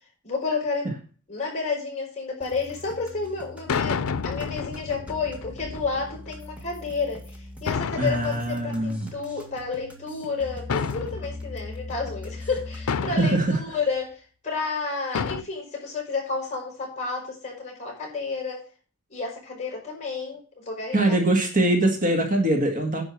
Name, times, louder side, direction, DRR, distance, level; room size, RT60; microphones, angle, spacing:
voice 1, 0.2-0.9 1.3-14.2 14.4-18.6 19.1-21.2, left 4 dB, 35° left, 0 dB, 5.5 m, -31 dB
sound 1, 2.4-13.1, left 2 dB, 5° right, 1.9 m, -41 dB
sound 2, 2.5-2.7 3.7-6.3 7.7-9.4 10.7-11.7 12.9-13.6 15.1-15.4, left 6 dB, 90° left, 0.6 m, -30 dB
voice 2, 8.0-9.1 13.1-13.6 20.9-23.0, right 1 dB, 40° right, 2 dB, 2.0 m, -22 dB
10.5 x 5.3 x 7.5 m, 0.39 s
head